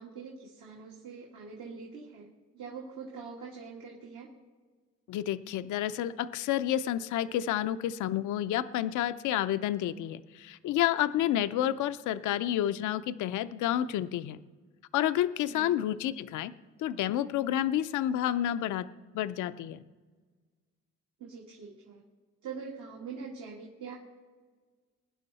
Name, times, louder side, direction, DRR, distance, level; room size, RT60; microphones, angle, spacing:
voice 1, 0.0-4.3 15.5-15.8 21.2-22.0 22.4-24.0, right 5 dB, 75° right, -3 dB, 2.1 m, -44 dB
voice 2, 5.1-14.4 14.9-16.5 16.8-18.9 19.1-19.8, left 12 dB, 80° left, 12 dB, 0.5 m, -30 dB
21.5 x 9.9 x 4.1 m, 1.4 s
cardioid pair, 90°, 30 cm